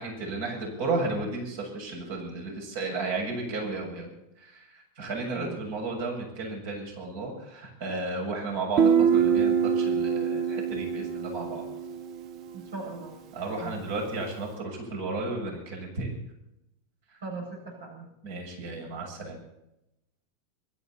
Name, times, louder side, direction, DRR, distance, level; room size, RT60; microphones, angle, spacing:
voice 1, 0.0-11.7 13.3-16.1 18.2-19.4, right 3 dB, 65° right, 1 dB, 7.1 m, -33 dB
Guitar, 8.8-12.4, right 7 dB, 50° right, 1.0 m, -24 dB
voice 2, 12.5-13.1 13.6-13.8 17.2-18.1, right 3 dB, 80° right, -1 dB, 6.9 m, -39 dB
24.0 x 13.0 x 4.3 m, 0.86 s
hypercardioid pair, 100°, 0 cm